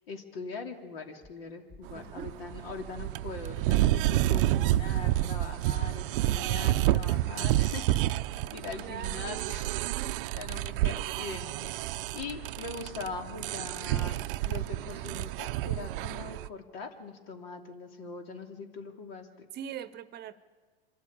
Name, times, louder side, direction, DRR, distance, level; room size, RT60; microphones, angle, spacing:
voice 1, 0.1-8.0 8.3-9.7 10.4-19.5, left 4 dB, 70° left, 4 dB, 3.0 m, -42 dB
sound 1, 1.1-1.3 1.7-2.1 2.5-2.9 3.3-3.7 4.1-4.5 4.9-5.3 5.7-6.1, left 3 dB, 40° left, 4.2 m, -54 dB
voice 2, 1.9-2.3 8.7-9.6 9.9-10.2 19.5-20.4, right 9 dB, 30° right, 15 dB, 0.9 m, -42 dB
sound 2, 1.9-16.5, right 15 dB, 60° right, 0.6 m, -29 dB
26.0 x 13.0 x 8.7 m, 1.4 s
hypercardioid pair, 105°, 31 cm